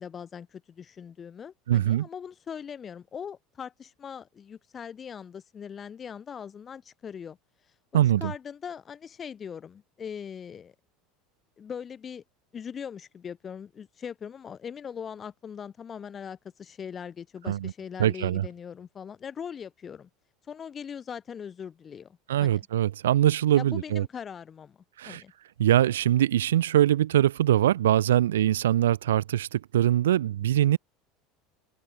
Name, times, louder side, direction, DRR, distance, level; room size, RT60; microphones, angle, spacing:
voice 1, 0.0-7.4 8.2-10.7 11.6-12.2 12.5-20.1 20.5-22.6 23.6-25.3, left 7 dB, 30° left, 7.2 m, -40 dB
voice 2, 1.7-2.1 7.9-8.3 17.5-17.7 18.0-18.5 22.3-24.1 25.0-25.2 25.6-30.8, right 12 dB, 75° right, 1.9 m, -23 dB
hypercardioid pair, 75°, 0 cm